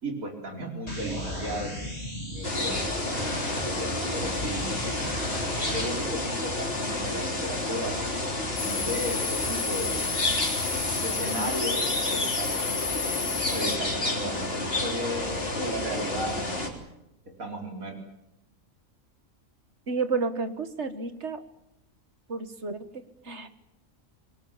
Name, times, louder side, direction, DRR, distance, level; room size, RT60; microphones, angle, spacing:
voice 1, 0.0-1.8 2.3-2.9 3.5-5.0 5.7-8.0 8.6-10.1 11.0-12.7 13.5-16.7 17.4-17.9, equal, 80° right, 2 dB, 4.7 m, -35 dB
sound 1, 0.9-5.9, equal, 25° left, 7.8 m, -35 dB
sound 2, 2.4-16.7, left 2 dB, 45° left, 4.0 m, -30 dB
sound 3, 8.6-13.8, left 5 dB, 60° left, 1.8 m, -32 dB
voice 2, 19.9-21.4 22.3-23.5, right 4 dB, 55° right, 10 dB, 2.0 m, -31 dB
26.5 x 22.0 x 7.4 m, 0.86 s
omnidirectional pair, 1.4 m